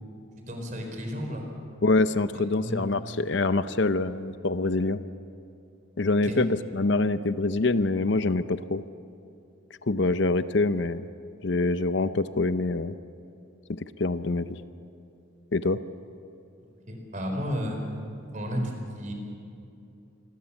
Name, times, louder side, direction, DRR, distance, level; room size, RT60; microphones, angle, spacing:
voice 1, 0.5-1.4 2.3-2.9 6.2-6.4 16.9-17.8 18.3-19.1, equal, 35° right, 3 dB, 4.5 m, -32 dB
voice 2, 1.8-5.0 6.0-8.8 9.8-11.1 11.4-12.9 13.7-14.6 15.5-15.8, left 3 dB, 55° left, 12 dB, 0.7 m, -25 dB
27.5 x 21.5 x 7.3 m, 2.7 s
head